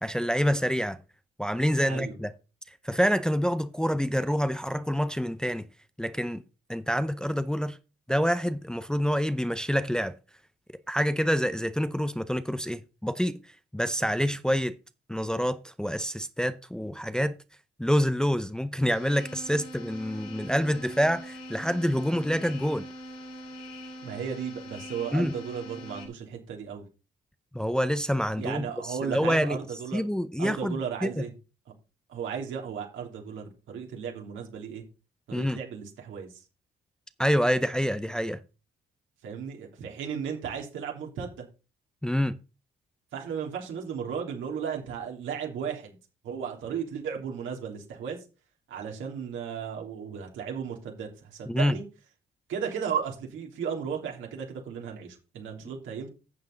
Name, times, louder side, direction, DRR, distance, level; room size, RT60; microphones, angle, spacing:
voice 1, 0.0-1.0 1.4-2.3 2.8-5.6 6.0-6.4 6.7-7.8 8.1-10.1 10.9-13.4 13.7-14.7 15.1-17.4 17.8-22.8 25.1-25.3 27.5-29.6 29.9-31.2 35.3-35.6 37.2-38.4 42.0-42.3 51.5-51.8, equal, 5° left, 0.6 m, -27 dB
sound 1, 18.9-26.1, equal, 85° left, 3.7 m, -42 dB
voice 2, 24.0-26.8 28.4-30.0 30.4-31.3 32.1-34.8 35.3-36.4 39.2-41.4 43.1-46.0 46.2-48.2 48.7-51.8 52.5-56.1, right 7 dB, 80° right, 3.2 m, -35 dB
10.5 x 7.4 x 3.9 m
cardioid pair, 90°, 20 cm